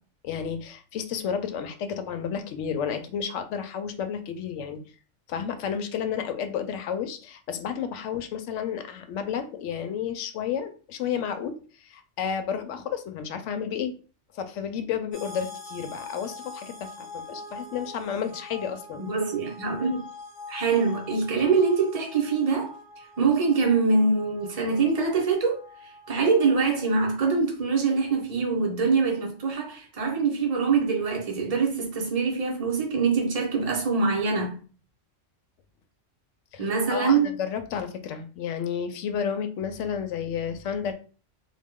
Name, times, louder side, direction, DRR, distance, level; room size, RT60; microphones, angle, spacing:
voice 1, 0.2-4.8 5.3-13.9 14.3-19.0 36.5-36.6 36.9-40.9, left 7 dB, 80° left, 0.9 m, -31 dB
sound 1, 15.1-26.6, left 3 dB, 15° right, 1.6 m, -44 dB
voice 2, 19.0-20.0 20.5-34.6 36.6-37.3, right 4 dB, 35° right, 0.8 m, -24 dB
3.0 x 2.3 x 3.5 m
omnidirectional pair, 1.2 m